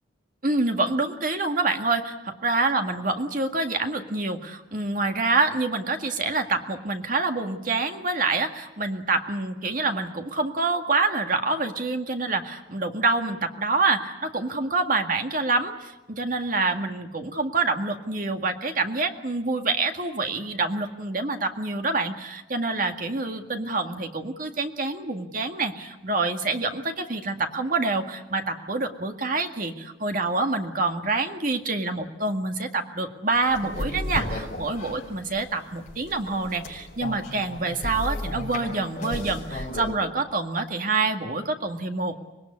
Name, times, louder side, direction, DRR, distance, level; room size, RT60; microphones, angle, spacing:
voice 1, 0.4-42.2, right 3 dB, 45° right, 5 dB, 2.0 m, -26 dB
sound 1, 33.3-39.9, left 1 dB, 40° left, 5.8 m, -34 dB
25.5 x 20.0 x 9.7 m, 1.0 s
head